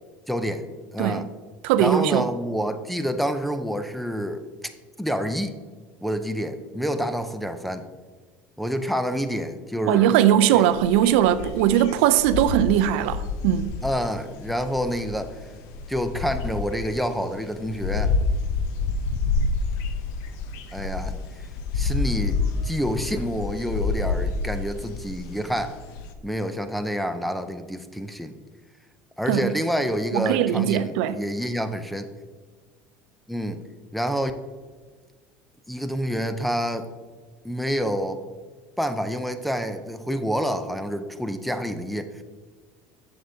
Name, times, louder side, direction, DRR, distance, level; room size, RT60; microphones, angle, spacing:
voice 1, 0.3-0.7 0.9-1.3 1.8-4.4 5.0-5.6 6.0-7.9 8.6-10.1 10.5-10.6 13.8-15.4 15.9-18.1 20.7-21.2 21.7-22.4 22.6-25.8 26.2-28.3 29.2-32.1 33.3-33.6 33.9-34.3 35.7-36.9 37.4-38.2 38.8-42.2, equal, ahead, 0.4 m, -28 dB
voice 2, 1.6-2.3 9.9-13.7 29.3-29.5 30.1-31.2, right 11 dB, 80° right, 0.4 m, -20 dB
sound 1, 10.7-26.1, left 4 dB, 65° left, 0.6 m, -29 dB
7.5 x 6.8 x 2.7 m
supercardioid pair, 130°, 6 cm